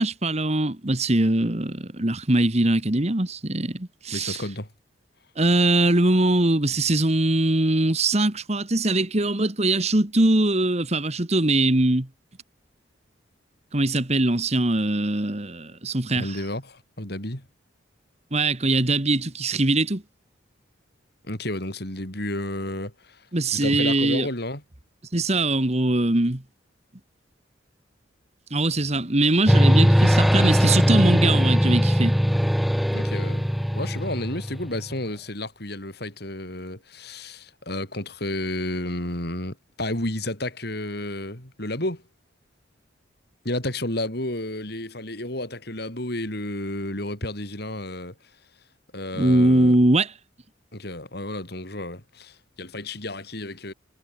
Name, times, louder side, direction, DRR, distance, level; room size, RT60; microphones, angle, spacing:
voice 1, 0.0-4.4 5.4-12.1 13.7-16.4 18.3-20.0 23.3-24.3 25.1-26.4 28.5-32.2 49.2-50.1, right 2 dB, 35° right, 1.6 m, -22 dB
voice 2, 4.1-4.7 16.1-17.5 21.3-23.2 23.5-24.6 32.9-33.4 33.7-42.0 43.4-48.1 48.9-49.8 50.7-53.7, left 1 dB, 55° left, 6.0 m, -31 dB
sound 1, 29.5-35.0, equal, ahead, 1.3 m, -20 dB
head